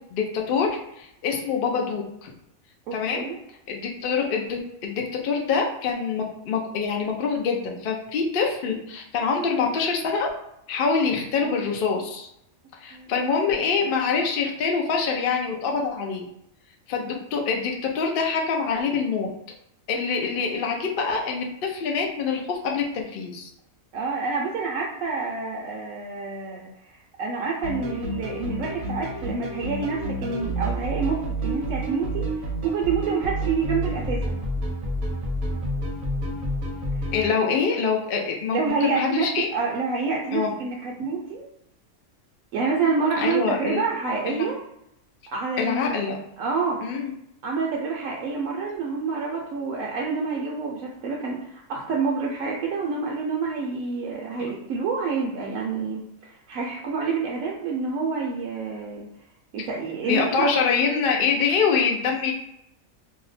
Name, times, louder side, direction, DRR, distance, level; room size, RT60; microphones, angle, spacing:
voice 1, 0.1-2.3 2.9-3.3 3.7-10.3 10.7-12.3 12.8-16.2 16.9-19.3 19.9-23.5 37.1-39.5 40.3-40.5 43.2-43.8 44.3-44.5 45.6-46.2 46.8-47.1 54.4-54.5 60.1-62.3, left 5 dB, 65° left, 1 dB, 0.5 m, -25 dB
voice 2, 2.9-3.4 11.4-11.5 12.9-13.1 20.4-20.5 23.9-32.3 32.6-34.4 38.5-41.4 42.5-44.6 45.3-45.9 46.4-46.9 47.4-59.1 59.5-60.5, right 4 dB, 75° right, -2 dB, 0.9 m, -28 dB
sound 1, 27.6-37.2, right 1 dB, 50° right, 0.7 m, -29 dB
2.7 x 2.2 x 4.0 m, 0.80 s
omnidirectional pair, 1.5 m